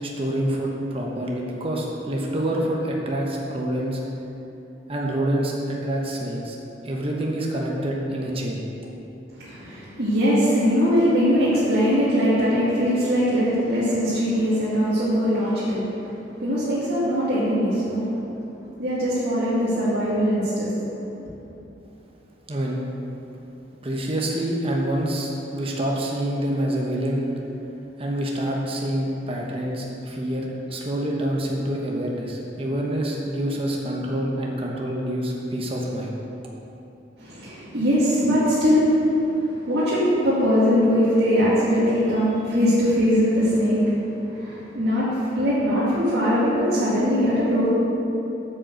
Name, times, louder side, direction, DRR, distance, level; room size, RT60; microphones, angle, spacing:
voice 1, 0.0-4.0 4.9-6.6 6.8-8.7 22.5-22.8 23.8-27.3 28.0-36.1, right 1 dB, 30° right, -2 dB, 1.1 m, -26 dB
voice 2, 9.3-18.2 18.8-21.2 37.2-47.7, equal, 65° right, -11 dB, 2.3 m, -21 dB
9.0 x 6.6 x 6.4 m, 2.9 s
head